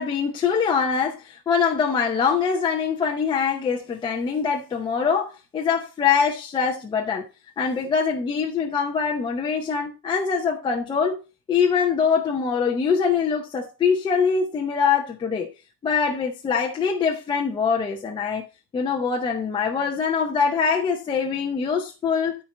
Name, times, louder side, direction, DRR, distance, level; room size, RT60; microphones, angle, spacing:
voice 1, 0.0-7.3 7.6-11.2 11.5-15.5 15.8-18.5 18.7-22.3, left 6 dB, 10° left, 0.6 m, -23 dB
13.0 x 4.7 x 4.1 m
supercardioid pair, 165°, 46 cm